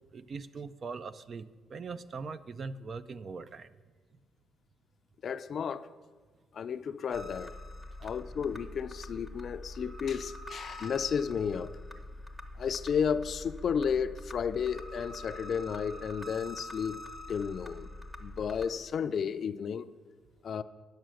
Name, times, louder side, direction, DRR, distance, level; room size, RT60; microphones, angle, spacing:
voice 1, 0.1-3.7, right 4 dB, 45° right, 0.4 m, -41 dB
voice 2, 5.2-5.9 6.5-7.6 8.0-11.8 12.6-17.0 17.3-17.9 18.2-19.9 20.4-20.6, left 7 dB, 55° left, 0.4 m, -32 dB
sound 1, 7.1-18.7, left 1 dB, 5° right, 0.8 m, -45 dB
10.5 x 6.5 x 6.3 m
cardioid pair, 90°, 0 cm